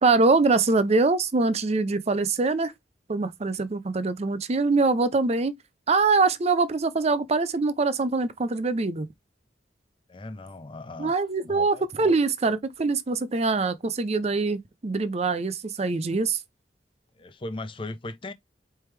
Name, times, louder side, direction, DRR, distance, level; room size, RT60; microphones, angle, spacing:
voice 1, 0.0-2.7 3.1-5.6 5.9-9.1 11.0-16.4, right 3 dB, 35° right, 0.5 m, -23 dB
voice 2, 10.1-11.1 11.5-12.1 17.2-18.3, left 2 dB, 30° left, 0.5 m, -38 dB
4.4 x 3.4 x 3.2 m
head